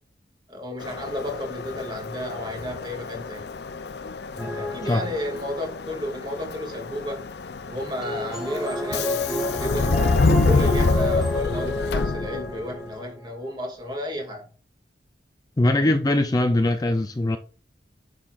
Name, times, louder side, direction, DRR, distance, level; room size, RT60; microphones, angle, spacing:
voice 1, 0.5-3.5 4.5-7.3 7.7-9.9 10.4-14.4, left 1 dB, 25° right, 2.5 m, -32 dB
Subway metro underground, 0.8-12.7, left 3 dB, 65° left, 0.6 m, -27 dB
voice 2, 4.4-5.1 15.6-17.4, left 1 dB, 20° left, 0.5 m, -22 dB
sound 1, 4.4-5.7 8.0-13.3, left 1 dB, ahead, 1.2 m, -30 dB
9.4 x 6.6 x 2.5 m
head